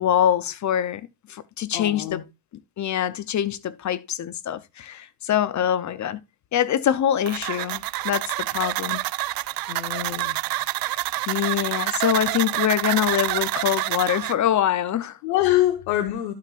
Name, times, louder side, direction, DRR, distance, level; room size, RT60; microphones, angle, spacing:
voice 1, 0.0-2.2 2.8-6.2 6.5-9.0 11.3-15.2, left 10 dB, 35° left, 0.7 m, -24 dB
voice 2, 1.7-2.2 9.7-10.4 15.2-16.3, left 14 dB, 80° left, 1.3 m, -24 dB
sound 1, 7.3-14.3, right 17 dB, 50° right, 0.5 m, -27 dB
13.0 x 5.7 x 2.4 m
supercardioid pair, 85°, 49 cm